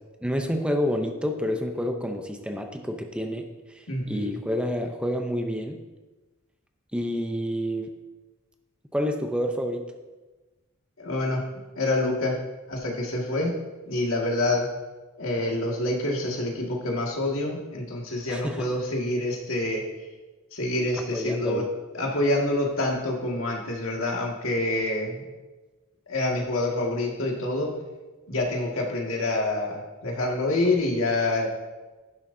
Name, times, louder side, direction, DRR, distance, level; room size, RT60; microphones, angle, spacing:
voice 1, 0.2-3.5 3.7-5.8 6.9-7.9 8.9-9.8 18.3-18.7 21.1-21.7, equal, 5° right, 4 dB, 0.6 m, -28 dB
voice 2, 3.9-4.4 11.0-11.5 11.8-12.4 12.7-13.5 13.8-14.7 15.2-19.8 20.5-21.6 21.9-25.3 26.1-27.8 28.3-31.5, left 2 dB, 85° left, -1 dB, 2.0 m, -27 dB
11.0 x 10.5 x 2.7 m, 1.2 s
head